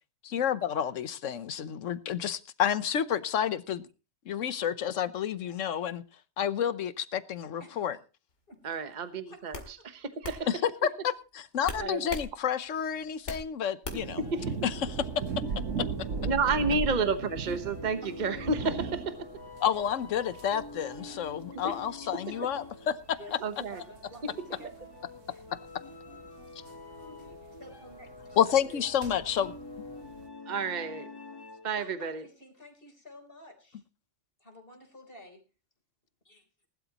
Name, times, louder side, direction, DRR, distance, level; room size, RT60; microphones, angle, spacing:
voice 1, 0.2-3.9 4.3-6.0 6.4-8.0 10.8-14.2 15.8-15.9 19.6-23.2 28.4-29.5, left 9 dB, 85° left, 1.2 m, -30 dB
voice 2, 8.6-9.8 10.2-10.6 11.8-12.1 13.9-14.5 16.2-19.3 21.5-21.7 22.0-22.2 23.4-23.8 24.2-24.3 27.0-27.3 28.7-28.8 30.5-31.1 31.6-32.2, right 4 dB, 40° right, 1.2 m, -31 dB
sound 1, 8.7-8.9 9.5-9.7 10.2-10.4 11.6-12.3 12.7-13.5 13.8-14.2, left 3 dB, 70° left, 2.5 m, -38 dB
voice 3, 9.3-9.6 10.4-10.6 12.9-13.1 18.0-18.2 18.6-18.7 22.3-22.6 23.2-24.9 25.3-25.4 26.9-28.4 31.8-33.8 34.4-35.4 36.2-36.4, left 1 dB, 50° left, 3.9 m, -51 dB
sound 2, 13.9-30.3, right 5 dB, 90° right, 1.5 m, -39 dB
sound 3, 14.2-31.9, left 3 dB, 20° left, 1.5 m, -47 dB
20.0 x 12.0 x 3.0 m
omnidirectional pair, 1.3 m